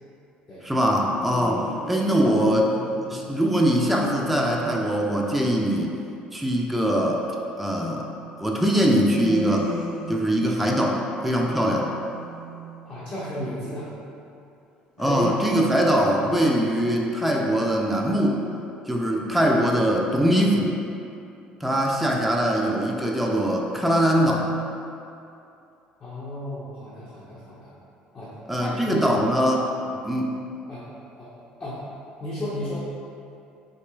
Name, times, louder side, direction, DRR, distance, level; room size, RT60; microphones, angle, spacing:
voice 1, 0.6-2.7 3.1-6.0 6.3-7.2 7.6-8.1 8.4-9.7 10.1-11.9 15.0-18.4 18.9-20.8 21.6-24.5 28.5-29.7 30.0-30.3, equal, ahead, -1 dB, 0.4 m, -22 dB
sound 1, 1.0-3.7 9.1-13.4 15.0-16.3, equal, 65° left, 0.9 m, -35 dB
voice 2, 12.8-13.9 26.0-27.7 28.1-28.3 28.6-29.2 29.8-30.0 30.7-30.9 31.2-31.8 32.2-32.8, left 1 dB, 35° left, -9 dB, 0.7 m, -34 dB
3.9 x 2.9 x 2.3 m, 2.6 s
figure-of-eight pair, 55°, 4 cm